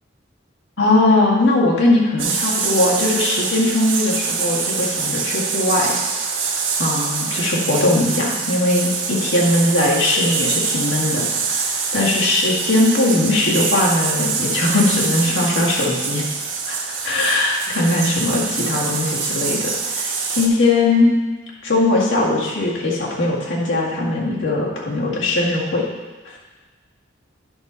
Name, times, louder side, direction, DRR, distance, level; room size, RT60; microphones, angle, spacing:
voice 1, 0.8-5.9 6.4-16.3 16.7-16.8 17.0-21.1 21.6-25.8 26.3-26.4, left 2 dB, 70° left, -4 dB, 2.0 m, -19 dB
sound 1, 2.2-20.5, right 5 dB, 80° right, 1.3 m, -24 dB
10.5 x 5.7 x 4.0 m, 1.3 s
head